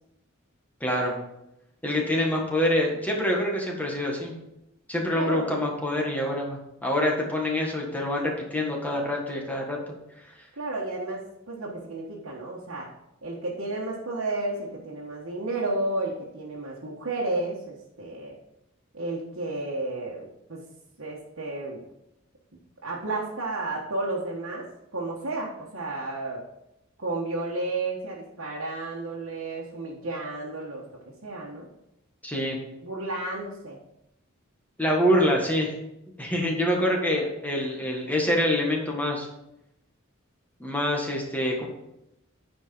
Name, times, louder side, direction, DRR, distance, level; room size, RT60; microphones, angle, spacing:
voice 1, 0.8-1.1 1.8-4.3 4.9-9.8 32.2-32.6 34.8-35.7 36.2-39.3 40.6-41.7, left 1 dB, 10° left, -1 dB, 1.7 m, -26 dB
voice 2, 5.1-5.5 10.6-12.9 13.2-18.4 18.9-20.6 21.0-21.8 22.8-24.7 24.9-26.4 27.0-30.8 31.2-31.7 32.8-33.8 36.4-36.5, right 2 dB, 70° right, -5 dB, 1.5 m, -32 dB
9.5 x 5.2 x 5.2 m, 0.85 s
head